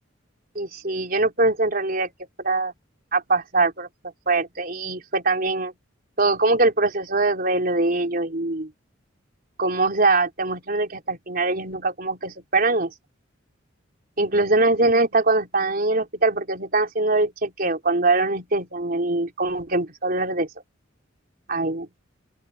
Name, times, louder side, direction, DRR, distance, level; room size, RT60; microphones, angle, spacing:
voice 1, 0.6-2.1 2.4-2.7 3.1-3.9 4.3-5.7 6.2-8.7 9.6-12.9 14.2-20.5 21.5-21.9, right 2 dB, 50° right, 4.0 m, -22 dB
open air
head